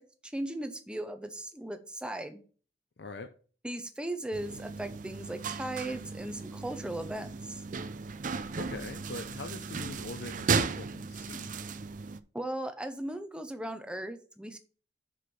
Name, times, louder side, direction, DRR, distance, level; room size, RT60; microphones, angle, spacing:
voice 1, 0.0-2.4 3.6-7.6 12.3-14.6, right 1 dB, 5° right, 0.7 m, -37 dB
voice 2, 3.0-3.3 8.6-11.5, left 3 dB, 65° left, 0.6 m, -42 dB
sound 1, 4.3-12.2, right 5 dB, 45° right, 0.5 m, -35 dB
6.1 x 5.0 x 5.8 m
head